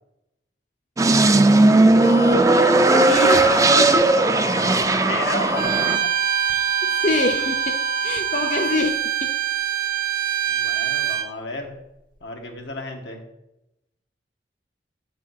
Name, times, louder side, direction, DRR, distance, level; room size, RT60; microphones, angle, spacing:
sound 1, 1.0-6.0, right 2 dB, 20° right, 0.4 m, -16 dB
sound 2, 2.0-8.8, left 4 dB, 60° left, 1.2 m, -33 dB
voice 1, 2.0-4.1 6.8-7.7 8.0-9.3, left 2 dB, 45° left, 3 dB, 0.7 m, -26 dB
voice 2, 5.1-6.1 6.5-6.6 10.5-11.8 12.2-13.2, left 2 dB, 85° left, 2 dB, 1.6 m, -33 dB
Bowed string instrument, 5.5-11.3, right 12 dB, 55° right, 0.7 m, -24 dB
7.9 x 4.7 x 5.8 m, 0.90 s
head